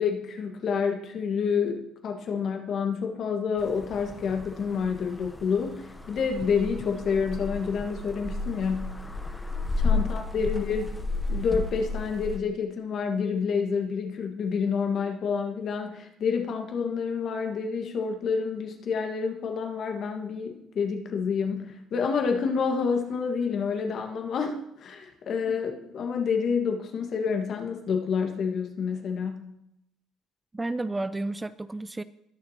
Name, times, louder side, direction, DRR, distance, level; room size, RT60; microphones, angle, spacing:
voice 1, 0.0-9.0 9.8-11.0 11.3-29.5, left 6 dB, 55° left, 4 dB, 1.6 m, -28 dB
sound 1, 3.6-12.4, left 3 dB, 10° left, 0.9 m, -32 dB
voice 2, 30.5-32.0, right 2 dB, 20° right, 15 dB, 0.4 m, -32 dB
19.5 x 6.6 x 2.9 m, 0.81 s
supercardioid pair, 70°, 0 cm